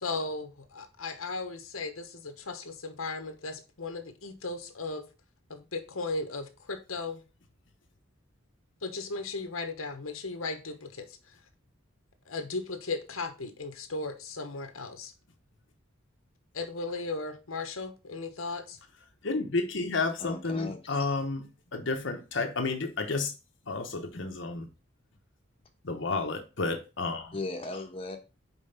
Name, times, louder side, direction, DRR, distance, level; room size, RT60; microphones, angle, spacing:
voice 1, 0.0-5.0 5.5-7.2 8.8-11.3 12.2-15.1 16.5-18.8, left 3 dB, 85° left, 1.1 m, -36 dB
voice 2, 19.2-21.4 21.7-23.3 23.7-24.7 25.8-27.4, left 3 dB, 60° left, 1.0 m, -31 dB
voice 3, 20.2-21.2 27.3-28.2, left 2 dB, 25° left, 1.1 m, -38 dB
5.3 x 4.6 x 5.7 m
head